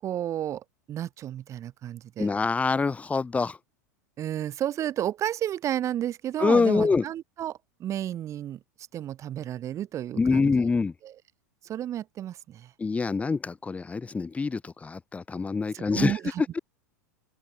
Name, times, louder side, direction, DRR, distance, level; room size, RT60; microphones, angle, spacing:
voice 1, 0.0-2.3 4.2-8.6 8.9-10.5 11.0-11.2 11.6-12.7 15.7-16.4, right 11 dB, 35° right, 3.3 m, -32 dB
voice 2, 2.2-3.6 6.4-7.0 10.2-10.9 12.8-16.2, left 4 dB, 15° left, 2.3 m, -25 dB
open air
figure-of-eight pair, 85°, 9 cm